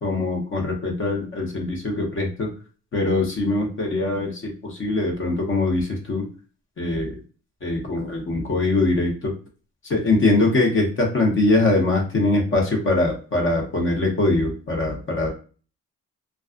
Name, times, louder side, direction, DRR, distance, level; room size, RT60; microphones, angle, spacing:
voice 1, 0.0-2.5 2.9-6.3 6.8-7.2 7.6-9.3 9.9-15.3, left 2 dB, 40° left, 0 dB, 0.8 m, -22 dB
2.3 x 2.3 x 2.4 m, 0.38 s
cardioid pair, 90°, 30 cm